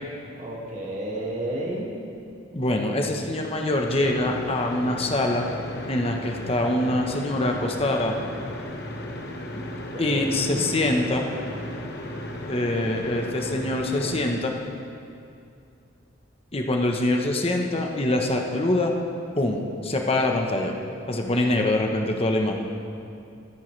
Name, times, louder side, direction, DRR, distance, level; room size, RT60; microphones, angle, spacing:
voice 1, 0.4-2.0 9.8-10.6, right 1 dB, 40° right, -3 dB, 2.1 m, -32 dB
voice 2, 2.5-5.5 5.9-8.1 10.0-11.3 12.5-14.5 16.5-18.9 19.4-20.7 21.1-22.6, left 1 dB, 30° left, 2 dB, 1.1 m, -24 dB
sound 1, 3.7-14.3, left 1 dB, 60° left, 1.1 m, -35 dB
23.0 x 10.0 x 3.3 m, 2.5 s
head